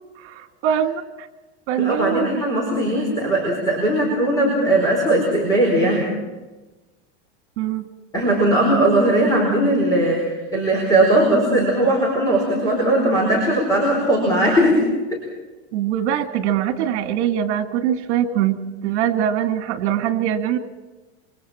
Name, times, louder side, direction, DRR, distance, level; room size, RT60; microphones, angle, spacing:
voice 1, 0.2-1.3 1.7-2.3 2.9-3.0 7.6-7.9 15.7-18.6 18.8-20.6, right 10 dB, 65° right, 6 dB, 2.2 m, -22 dB
voice 2, 1.8-6.1 8.1-15.2, right 1 dB, 10° left, -2 dB, 4.5 m, -19 dB
27.5 x 25.0 x 4.4 m, 1.2 s
supercardioid pair, 175°, 35 cm